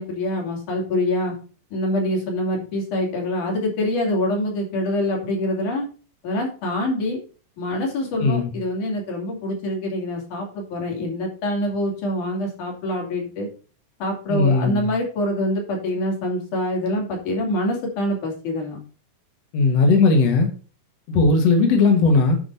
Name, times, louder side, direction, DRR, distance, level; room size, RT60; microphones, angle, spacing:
voice 1, 0.0-1.3 1.7-5.9 6.2-7.2 7.6-13.5 14.0-18.8, left 1 dB, 75° left, 4.3 m, -25 dB
voice 2, 8.2-8.5 14.3-14.9 19.5-20.5 21.1-22.4, left 3 dB, 60° left, 2.3 m, -17 dB
10.0 x 4.9 x 5.5 m
omnidirectional pair, 3.6 m